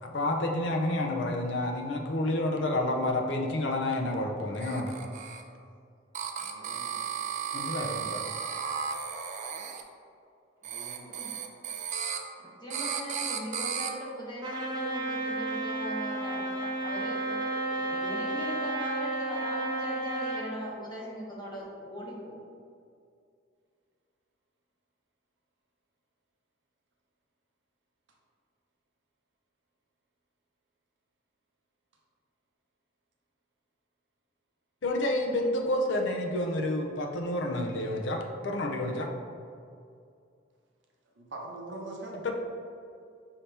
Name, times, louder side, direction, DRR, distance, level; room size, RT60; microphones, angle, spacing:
voice 1, 0.0-5.0 7.5-8.2 34.8-38.2 38.4-39.1 42.2-42.3, left 1 dB, 70° left, 2 dB, 0.5 m, -29 dB
sound 1, 4.5-5.4 6.1-9.8 10.6-12.2 12.7-13.9, right 7 dB, 40° right, 0.3 m, -34 dB
voice 2, 6.4-7.1 10.6-11.2 41.2-42.3, right 2 dB, 65° right, -1 dB, 0.7 m, -43 dB
voice 3, 12.4-17.5 17.8-22.4, equal, 25° left, -4 dB, 0.9 m, -40 dB
Trumpet, 14.4-20.5, right 2 dB, 20° right, 0.7 m, -32 dB
5.8 x 2.8 x 3.3 m, 2.4 s
head